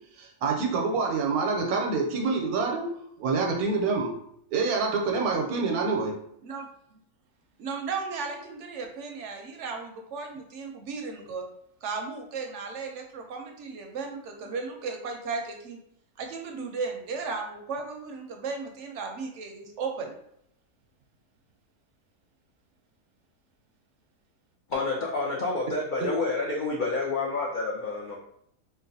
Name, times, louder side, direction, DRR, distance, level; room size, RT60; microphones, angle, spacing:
voice 1, 0.2-2.9 3.2-4.1 4.5-6.2, right 4 dB, 85° right, 2 dB, 1.1 m, -26 dB
voice 2, 6.4-7.0 7.6-11.5 11.8-15.8 16.2-20.1, right 4 dB, 65° right, 3 dB, 0.8 m, -35 dB
voice 3, 24.7-28.2, left 3 dB, 70° left, -3 dB, 0.4 m, -29 dB
3.8 x 2.4 x 2.6 m, 0.72 s
omnidirectional pair, 1.5 m